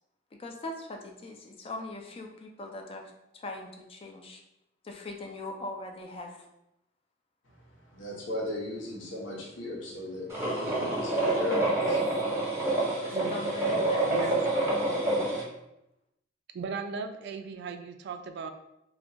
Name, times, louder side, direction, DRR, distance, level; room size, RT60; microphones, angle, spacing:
voice 1, 0.3-4.4 4.8-6.5 11.5-11.8 13.3-14.1, left 2 dB, 30° left, 2 dB, 0.4 m, -41 dB
voice 2, 7.5-12.0 12.3-12.6, left 1 dB, 75° left, -2 dB, 0.8 m, -38 dB
sound 1, 10.3-15.4, right 2 dB, 15° right, 0.8 m, -27 dB
voice 3, 14.1-14.4 16.5-18.5, right 5 dB, 60° right, 8 dB, 0.3 m, -37 dB
2.3 x 2.2 x 3.8 m, 0.87 s
head